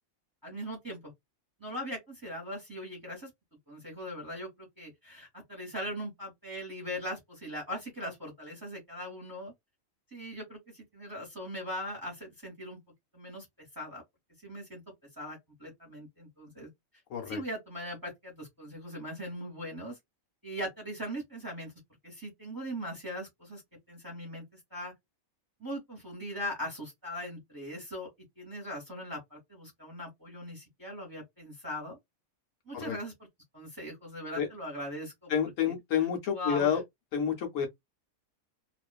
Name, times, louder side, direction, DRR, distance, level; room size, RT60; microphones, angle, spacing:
voice 1, 0.4-1.1 1.6-3.3 3.7-9.5 10.1-12.8 13.1-14.0 14.4-14.8 15.2-16.7 17.3-20.0 20.4-21.7 22.0-23.6 23.9-24.4 24.7-24.9 25.6-28.1 28.4-32.0 32.7-33.3 33.5-35.3 35.6-36.1 36.3-36.8, equal, 15° right, 1.0 m, -40 dB
voice 2, 17.1-17.4 32.7-33.0 34.3-34.5 35.3-36.8 37.1-37.7, left 8 dB, 70° left, 1.0 m, -29 dB
2.4 x 2.4 x 2.3 m
omnidirectional pair, 1.5 m